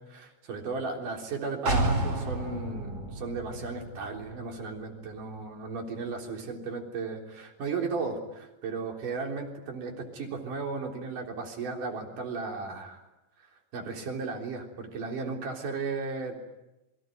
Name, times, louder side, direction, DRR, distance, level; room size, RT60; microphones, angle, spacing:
voice 1, 0.0-13.0 13.7-16.4, right 4 dB, 70° right, 2 dB, 5.2 m, -35 dB
sound 1, 1.7-5.4 5.8-5.9, right 2 dB, 45° right, 6.1 m, -31 dB
27.5 x 23.5 x 9.3 m, 0.96 s
omnidirectional pair, 3.8 m